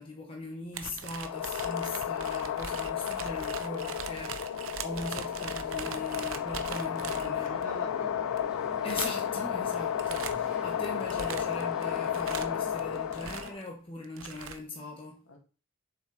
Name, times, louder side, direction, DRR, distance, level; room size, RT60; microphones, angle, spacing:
voice 1, 0.0-7.7 8.8-15.2, left 2 dB, 25° left, 1.4 m, -40 dB
sound 1, 0.7-7.6 8.4-8.5 8.9-9.4 9.7-10.5 10.8-13.7 14.0-14.6, right 7 dB, 70° right, 0.8 m, -41 dB
sound 2, 1.2-13.6, left 9 dB, 90° left, 0.3 m, -33 dB
sound 3, 4.9-13.5, equal, 5° right, 2.6 m, -47 dB
voice 2, 7.0-8.3 15.3-15.4, left 2 dB, 70° left, 2.3 m, -43 dB
7.2 x 6.3 x 4.1 m
head